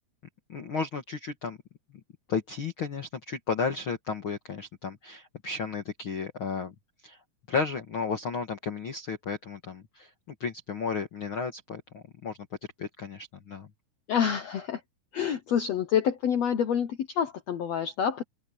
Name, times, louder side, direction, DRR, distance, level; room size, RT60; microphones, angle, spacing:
voice 1, 0.5-1.6 2.3-6.7 7.0-7.2 7.5-10.1 10.4-12.4 12.8-13.7, left 5 dB, 50° left, 1.6 m, -33 dB
voice 2, 14.1-14.8 15.1-18.2, left 8 dB, 70° left, 1.5 m, -27 dB
omnidirectional pair, 4.4 m